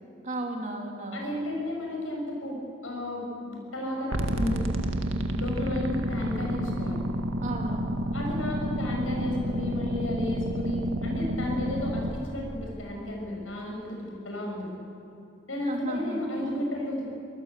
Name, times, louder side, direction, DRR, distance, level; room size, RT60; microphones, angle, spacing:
voice 1, 0.2-1.3 5.3-5.5 7.4-7.8 15.6-16.2, right 1 dB, 35° right, 2 dB, 3.0 m, -34 dB
voice 2, 1.1-4.6 5.4-7.0 8.1-14.7 15.5-17.0, left 1 dB, 75° left, 0 dB, 7.0 m, -33 dB
sound 1, 4.1-12.1, equal, 85° right, 1.8 m, -30 dB
24.0 x 19.5 x 8.3 m, 2.9 s
head